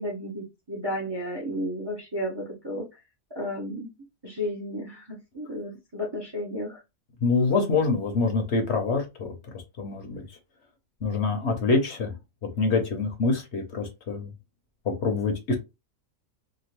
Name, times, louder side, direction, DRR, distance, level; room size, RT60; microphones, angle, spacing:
voice 1, 0.0-2.9 3.3-3.9 4.2-6.8, equal, 25° right, -1 dB, 0.6 m, -33 dB
voice 2, 7.2-10.4 11.0-12.1 12.6-14.3 14.8-15.5, left 3 dB, 60° left, 4 dB, 1.0 m, -26 dB
2.9 x 2.4 x 2.9 m, 0.24 s
omnidirectional pair, 1.4 m